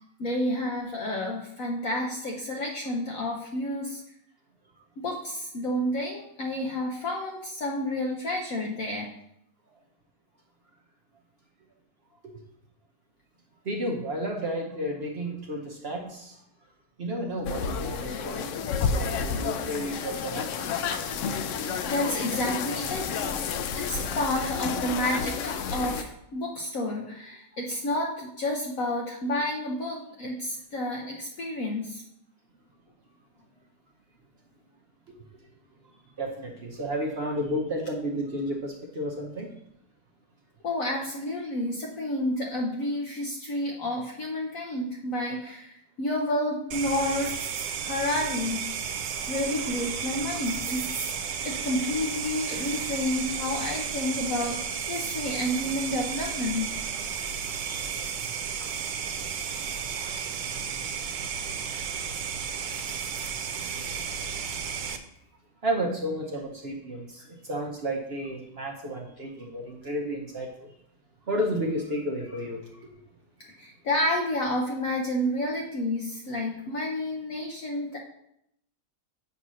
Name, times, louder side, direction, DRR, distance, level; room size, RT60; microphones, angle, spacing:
voice 1, 0.2-4.0 5.0-9.1 21.9-23.2 23.7-32.0 40.6-47.3 47.8-48.7 49.3-51.0 51.4-54.6 54.9-56.7 73.6-78.0, left 1 dB, 60° left, -1 dB, 1.1 m, -30 dB
voice 2, 13.7-16.3 17.0-18.5 18.8-20.5 36.2-39.5 51.5-51.7 57.6-58.0 65.6-70.5 71.3-72.6, equal, 50° right, 1 dB, 0.8 m, -32 dB
sound 1, 17.5-26.0, left 6 dB, 80° left, 0.6 m, -30 dB
sound 2, 46.7-65.0, right 7 dB, 85° right, 1.3 m, -33 dB
8.2 x 2.8 x 6.1 m, 0.75 s
omnidirectional pair, 1.9 m